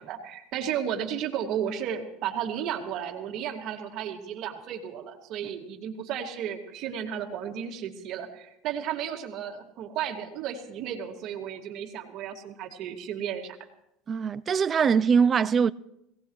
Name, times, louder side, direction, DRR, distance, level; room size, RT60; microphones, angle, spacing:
voice 1, 0.0-13.6, right 9 dB, 50° right, 2.2 m, -33 dB
voice 2, 14.1-15.7, right 6 dB, 30° right, 0.4 m, -22 dB
22.0 x 17.5 x 3.2 m
supercardioid pair, 120°, 0 cm